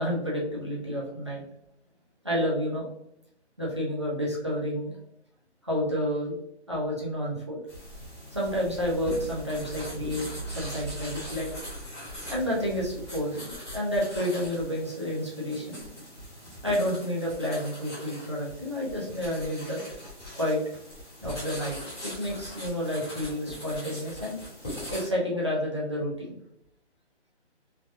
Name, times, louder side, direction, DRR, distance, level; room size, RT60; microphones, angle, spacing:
voice 1, 0.0-1.4 2.2-2.9 3.6-5.0 5.6-6.4 6.7-7.6 8.3-10.2 10.5-11.5 12.3-15.8 16.6-19.8 20.3-20.6 21.2-21.8 22.0-24.4 24.9-26.4, equal, 25° right, -5 dB, 0.5 m, -30 dB
sound 1, 7.7-25.1, equal, 25° left, 1.1 m, -40 dB
3.3 x 2.3 x 2.5 m, 0.76 s
hypercardioid pair, 175°, 35 cm